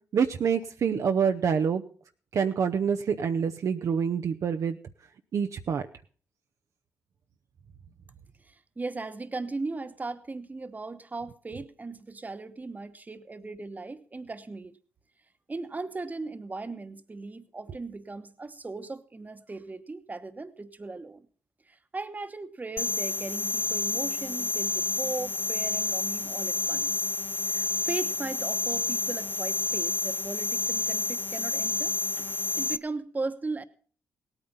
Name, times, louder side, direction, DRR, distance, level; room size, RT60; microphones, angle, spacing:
voice 1, 0.1-1.8 2.3-4.8 5.3-5.8, right 7 dB, 60° right, 6 dB, 0.7 m, -26 dB
voice 2, 8.4-14.8 15.5-21.3 21.7-27.1 27.5-33.6, right 3 dB, 30° right, 11 dB, 1.2 m, -38 dB
sound 1, 22.8-32.8, left 3 dB, 35° left, 0.5 m, -29 dB
17.0 x 9.0 x 5.6 m, 0.43 s
supercardioid pair, 55°, 6 cm